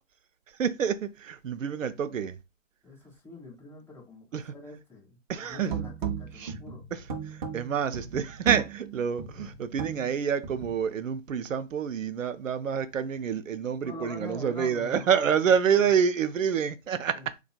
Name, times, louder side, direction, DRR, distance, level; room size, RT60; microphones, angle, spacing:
voice 1, 0.5-2.4 4.3-4.5 5.3-5.8 6.3-6.5 6.9-17.3, right 7 dB, 90° right, 0.6 m, -28 dB
voice 2, 2.8-6.9 13.8-15.2 15.7-15.8 17.1-17.2, left 2 dB, 5° left, 1.7 m, -45 dB
sound 1, 5.5-10.8, right 7 dB, 40° right, 0.6 m, -36 dB
4.0 x 2.4 x 2.2 m
hypercardioid pair, 145°, 38 cm